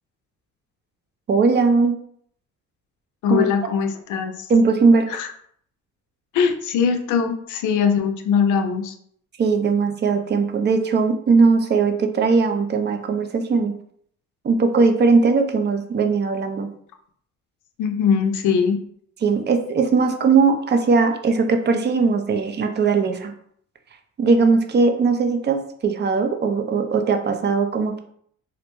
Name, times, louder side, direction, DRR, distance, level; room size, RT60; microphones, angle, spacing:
voice 1, 1.3-2.0 3.3-3.5 4.5-5.1 9.4-13.7 14.4-16.7 19.2-23.3 24.2-28.0, right 4 dB, 35° right, 6 dB, 0.4 m, -19 dB
voice 2, 3.2-4.5 5.1-5.3 6.3-8.9 17.8-18.8, left 6 dB, 80° left, 6 dB, 0.5 m, -21 dB
2.5 x 2.1 x 3.0 m, 0.65 s
cardioid pair, 90°, 30 cm